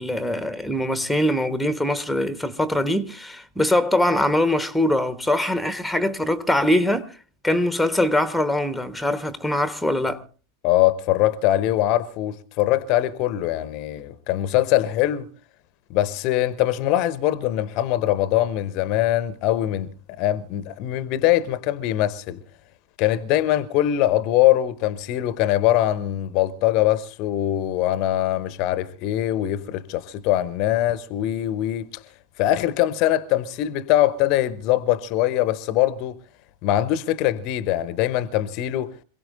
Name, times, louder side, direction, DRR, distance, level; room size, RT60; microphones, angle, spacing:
voice 1, 0.0-7.2 7.4-10.2, left 1 dB, ahead, 1.1 m, -22 dB
voice 2, 10.6-15.3 15.9-19.9 20.2-22.4 23.0-31.9 32.4-36.2 36.6-38.9, left 13 dB, 40° left, 0.8 m, -22 dB
27.0 x 17.0 x 2.6 m
figure-of-eight pair, 90°, 0 cm